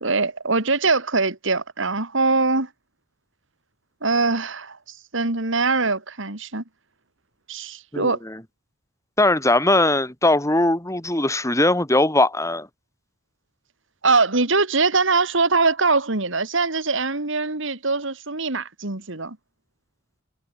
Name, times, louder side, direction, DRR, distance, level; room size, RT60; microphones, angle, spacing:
voice 1, 0.0-2.7 4.0-6.6 7.5-8.2 14.0-19.4, right 3 dB, 65° right, 2.7 m, -22 dB
voice 2, 7.9-8.4 9.2-12.7, left 2 dB, 15° left, 3.8 m, -20 dB
head